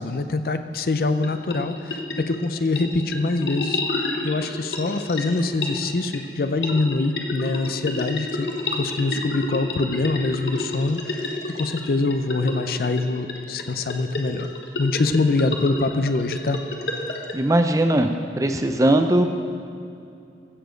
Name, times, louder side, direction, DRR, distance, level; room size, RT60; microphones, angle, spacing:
voice 1, 0.0-3.8 4.2-14.5 14.8-16.6, left 3 dB, 55° left, 10 dB, 0.5 m, -24 dB
sound 1, 1.0-17.3, left 2 dB, 80° left, 1.2 m, -30 dB
voice 2, 17.3-18.1 18.4-19.3, right 1 dB, 20° right, 6 dB, 0.5 m, -19 dB
15.5 x 7.0 x 5.1 m, 2.5 s
head